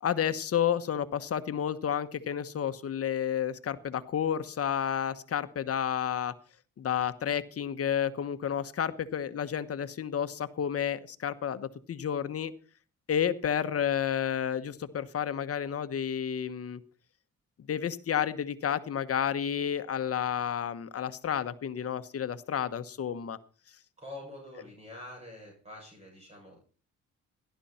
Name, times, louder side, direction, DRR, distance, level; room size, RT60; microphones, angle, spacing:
voice 1, 0.0-6.3 6.8-12.5 13.1-16.8 17.7-23.4, left 9 dB, 50° left, 11 dB, 1.2 m, -31 dB
voice 2, 24.0-26.6, left 1 dB, 20° right, -1 dB, 6.9 m, -46 dB
17.5 x 11.5 x 4.4 m, 0.39 s
cardioid pair, 90°, 30 cm